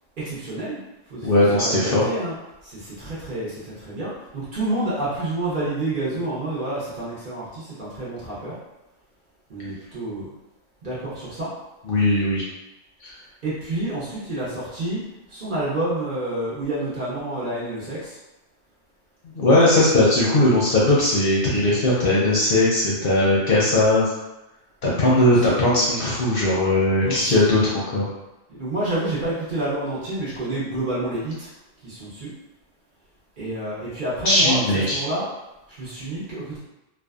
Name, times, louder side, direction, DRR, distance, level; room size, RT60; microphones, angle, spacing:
voice 1, 0.2-0.8 1.1-2.3 2.6-8.5 9.5-10.3 10.8-11.5 13.4-15.0 15.3-18.2 25.0-25.6 27.0-27.3 28.5-31.5 31.8-32.3 33.4-34.6 34.9-35.3 35.8-36.6, right 1 dB, 50° right, -8 dB, 0.8 m, -29 dB
voice 2, 1.2-2.0 11.8-12.4 13.0-13.1 19.2-24.1 24.8-28.0 34.2-35.0, left 1 dB, 55° left, -6 dB, 0.7 m, -19 dB
2.6 x 2.2 x 2.3 m, 0.97 s
omnidirectional pair, 1.3 m